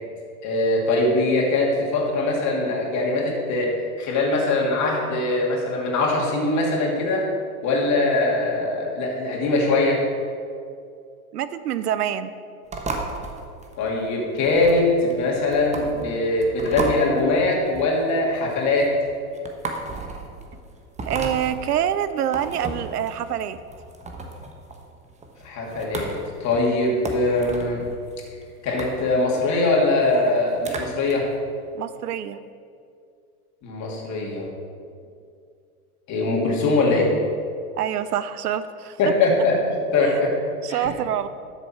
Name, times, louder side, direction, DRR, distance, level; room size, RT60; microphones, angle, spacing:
voice 1, 0.4-3.7 4.0-7.2 7.6-10.0 13.8-18.9 25.4-27.8 28.6-31.3 33.6-34.5 36.1-37.1 39.0-40.3 40.7-40.9, left 2 dB, 40° left, -2 dB, 2.7 m, -22 dB
voice 2, 11.3-12.3 21.1-23.6 31.7-32.4 37.8-39.0 40.0-40.1 40.6-41.3, right 10 dB, 90° right, 13 dB, 0.7 m, -26 dB
sound 1, 12.7-31.1, right 2 dB, 15° right, 1.1 m, -35 dB
12.0 x 6.9 x 4.5 m, 2.3 s
hypercardioid pair, 110°, 45 cm